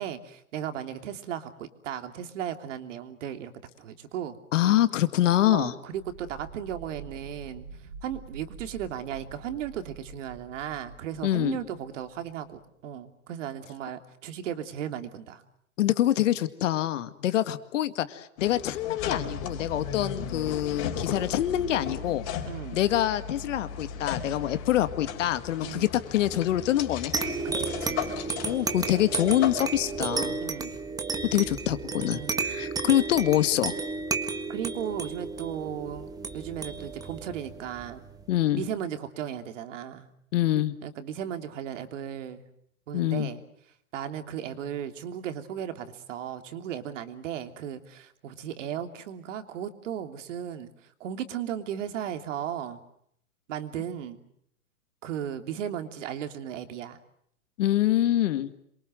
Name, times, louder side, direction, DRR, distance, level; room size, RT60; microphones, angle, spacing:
voice 1, 0.0-3.5 3.8-4.4 4.6-4.8 5.5-7.6 8.0-15.4 22.4-22.8 25.6-25.9 27.4-28.0 30.4-30.8 32.0-32.5 34.5-38.0 38.5-40.1 40.8-42.5 42.9-43.4 43.9-50.7 51.0-52.8 53.5-54.2 55.0-57.0, right 9 dB, 60° right, 8 dB, 3.1 m, -36 dB
voice 2, 4.5-5.7 11.2-11.6 15.8-22.2 22.7-27.1 28.4-30.4 31.3-33.8 38.3-38.6 40.3-40.7 42.9-43.3 57.6-58.5, left 13 dB, 60° left, 11 dB, 2.1 m, -25 dB
sound 1, 5.9-12.6, right 5 dB, 90° right, 4.2 m, -47 dB
sound 2, 18.4-30.2, left 7 dB, 35° left, 4.7 m, -36 dB
sound 3, 27.1-38.2, right 4 dB, 10° right, 1.6 m, -33 dB
27.5 x 23.5 x 7.8 m, 0.71 s
hypercardioid pair, 140°, 42 cm